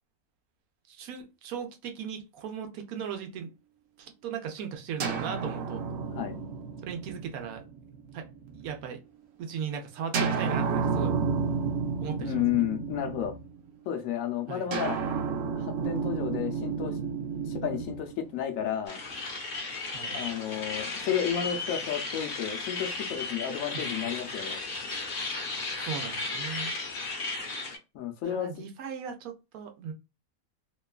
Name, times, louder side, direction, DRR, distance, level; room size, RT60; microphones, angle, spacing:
voice 1, 0.9-3.5 4.0-5.8 6.9-7.6 8.1-8.3 8.5-9.0 9.4-11.1 12.0-12.7 14.5-14.7 19.9-20.2 23.7-24.1 25.8-26.7 28.2-29.9, right 7 dB, 85° right, 1.1 m, -37 dB
sound 1, 5.0-8.8 10.1-13.7 14.7-18.8, right 5 dB, 60° right, 0.7 m, -31 dB
voice 2, 12.2-13.3 13.9-15.0 15.6-17.0 17.5-19.0 20.1-24.6 27.9-28.5, left 10 dB, 75° left, 1.0 m, -32 dB
sound 2, 18.9-27.8, left 3 dB, 50° left, 0.7 m, -35 dB
2.9 x 2.2 x 2.3 m
omnidirectional pair, 1.5 m